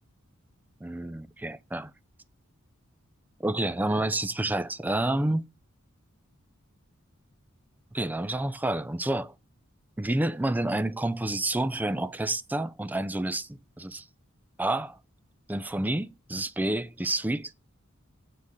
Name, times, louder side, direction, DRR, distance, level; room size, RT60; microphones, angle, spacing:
voice 1, 0.8-1.9 3.4-5.4 7.9-9.3 10.0-14.0 14.6-15.0 15.5-17.5, right 1 dB, 10° right, 0.4 m, -29 dB
7.4 x 4.1 x 6.3 m
head